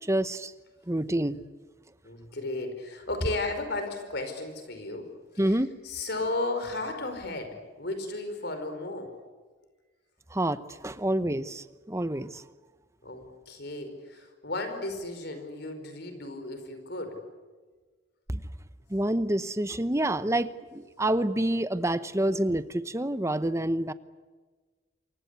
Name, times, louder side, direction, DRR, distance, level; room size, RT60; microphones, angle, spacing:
voice 1, 0.0-0.5 0.9-1.4 5.4-5.7 10.3-12.4 18.3-18.4 18.9-23.9, right 1 dB, 15° right, 13 dB, 0.9 m, -28 dB
voice 2, 2.0-9.1 13.0-17.2, left 2 dB, 60° left, 7 dB, 5.0 m, -34 dB
28.0 x 23.5 x 8.3 m, 1.4 s
head